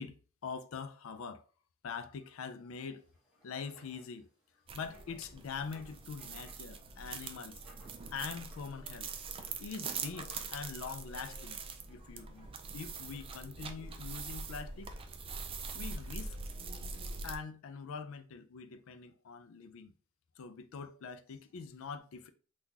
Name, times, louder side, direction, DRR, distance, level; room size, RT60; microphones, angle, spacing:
voice 1, 0.0-1.4 1.8-3.0 3.4-4.3 4.7-7.8 8.1-9.1 9.6-11.6 11.9-14.9 15.7-16.4 17.2-19.9 20.4-22.3, left 5 dB, 70° left, 0.4 m, -44 dB
Writing, 3.0-13.4, right 1 dB, ahead, 1.1 m, -63 dB
sound 1, 4.7-17.4, right 4 dB, 25° right, 0.3 m, -43 dB
3.7 x 2.4 x 2.7 m
head